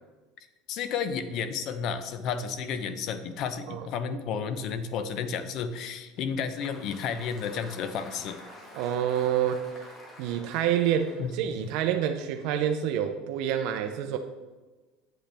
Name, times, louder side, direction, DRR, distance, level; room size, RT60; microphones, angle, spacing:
voice 1, 0.7-8.4 11.2-11.3 11.6-11.7, left 6 dB, 50° left, 11 dB, 0.7 m, -32 dB
Applause, 6.2-12.5, left 1 dB, 20° left, 1.6 m, -49 dB
voice 2, 8.7-9.7 10.2-14.2, right 9 dB, 60° right, 7 dB, 0.6 m, -27 dB
8.6 x 7.9 x 3.4 m, 1.2 s
supercardioid pair, 140°, 0 cm